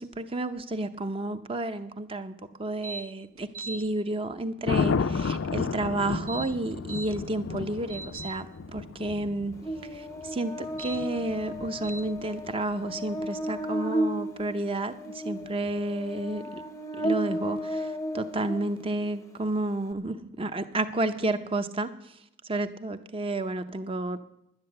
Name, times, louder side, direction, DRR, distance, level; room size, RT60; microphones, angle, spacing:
voice 1, 0.0-9.5 9.9-16.6 16.9-22.2 22.4-24.2, right 2 dB, 25° right, 10 dB, 0.6 m, -31 dB
sound 1, 2.8-3.0 3.4-3.8 6.1-7.1 7.6-8.3 10.6-11.0 11.8-12.0, right 3 dB, 90° right, 1.8 m, -39 dB
Thunder, 4.7-12.7 15.4-15.8, left 5 dB, 65° left, 0.4 m, -33 dB
Buzz, 9.6-19.1, right 1 dB, 15° left, 0.6 m, -34 dB
10.5 x 9.8 x 7.7 m, 0.82 s
head